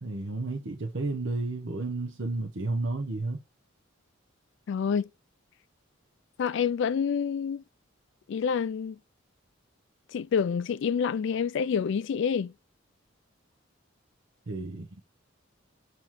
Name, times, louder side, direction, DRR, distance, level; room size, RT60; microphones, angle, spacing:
voice 1, 0.0-3.4 14.5-15.0, right 2 dB, 60° right, 0.8 m, -32 dB
voice 2, 4.7-5.1 6.4-7.6 8.3-9.0 10.1-12.5, left 6 dB, 60° left, 0.3 m, -27 dB
7.3 x 3.0 x 4.6 m
head